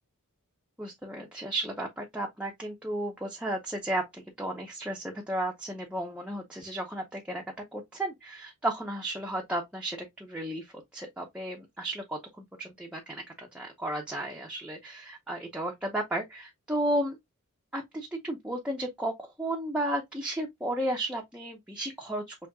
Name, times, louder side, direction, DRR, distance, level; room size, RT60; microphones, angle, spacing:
voice 1, 0.8-7.4 7.7-17.2 17.7-22.4, right 1 dB, 5° right, 0.8 m, -34 dB
6.3 x 3.4 x 2.3 m
head